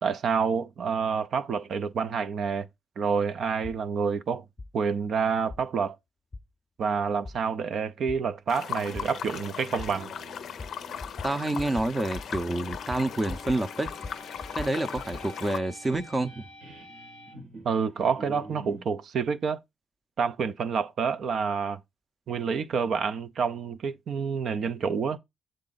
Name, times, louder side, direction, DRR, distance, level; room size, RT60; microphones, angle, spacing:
voice 1, 0.0-2.7 3.0-4.4 4.7-6.0 6.8-10.1 17.6-19.6 20.2-21.8 22.3-25.2, right 6 dB, 65° right, 0.5 m, -28 dB
sound 1, 3.6-3.8 4.6-4.7 5.5-5.6 6.3-6.4 7.2-7.4 8.1-8.2 8.9-9.1 9.8-9.9 10.6-10.7 11.0-11.3 11.6-11.9 12.1-12.4 12.7-13.6 13.8-15.2, left 3 dB, 25° left, 0.6 m, -39 dB
sound 2, 8.5-15.6, left 8 dB, 70° left, 0.4 m, -38 dB
sound 3, 9.8-18.9, equal, 90° right, 2.3 m, -48 dB
voice 2, 11.2-13.9 14.5-16.4, right 2 dB, 25° right, 0.6 m, -28 dB
7.4 x 3.8 x 4.0 m
cardioid pair, 80°, 0 cm